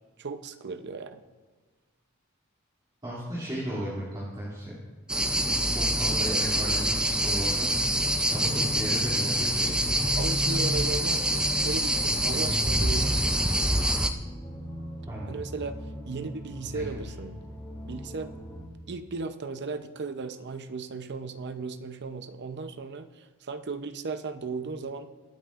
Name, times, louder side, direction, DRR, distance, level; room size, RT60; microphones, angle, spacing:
voice 1, 0.2-1.2 10.2-13.4 15.3-15.8 16.1-17.4 17.9-18.3 18.9-25.1, right 4 dB, 50° right, 10 dB, 0.6 m, -36 dB
voice 2, 3.0-4.7 5.5-7.7 8.3-9.7 15.1-15.3 16.6-16.8, equal, 20° right, -8 dB, 2.6 m, -35 dB
sound 1, 5.1-14.1, right 1 dB, 5° right, 0.5 m, -26 dB
sound 2, 7.8-18.6, equal, 25° left, 2.0 m, -38 dB
23.0 x 9.1 x 2.5 m, 1.3 s
head